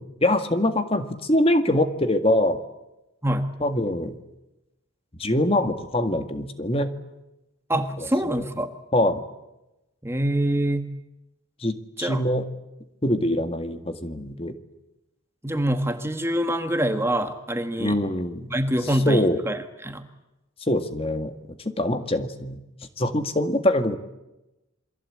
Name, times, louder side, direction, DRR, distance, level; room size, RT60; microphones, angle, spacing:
voice 1, 0.0-2.6 3.6-4.2 5.2-6.9 8.0-8.4 8.9-9.2 11.6-12.5 13.0-14.5 17.8-18.4 19.0-19.4 20.7-21.3 21.6-22.6 23.0-24.0, left 1 dB, 30° left, 8 dB, 1.9 m, -23 dB
voice 2, 7.7-8.7 10.0-10.9 12.0-12.2 15.4-18.0 18.5-20.1, right 1 dB, 10° right, 7 dB, 1.6 m, -25 dB
28.0 x 23.0 x 8.6 m, 0.96 s
head